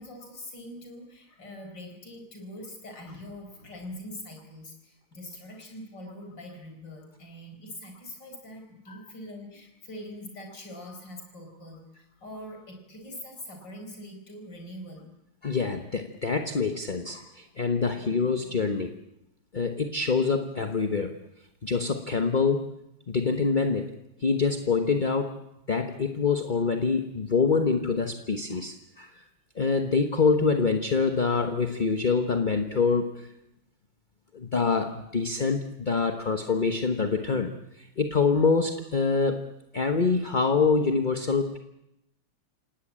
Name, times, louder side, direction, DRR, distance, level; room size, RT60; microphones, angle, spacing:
voice 1, 0.0-15.1, left 1 dB, 55° left, 4 dB, 5.5 m, -43 dB
voice 2, 15.4-18.9 19.5-21.1 21.6-22.7 23.1-23.9 24.2-25.3 25.7-29.2 29.5-33.3 34.3-39.4 39.7-41.6, left 4 dB, 30° left, 6 dB, 0.9 m, -25 dB
28.0 x 17.5 x 8.8 m, 0.86 s
omnidirectional pair, 2.4 m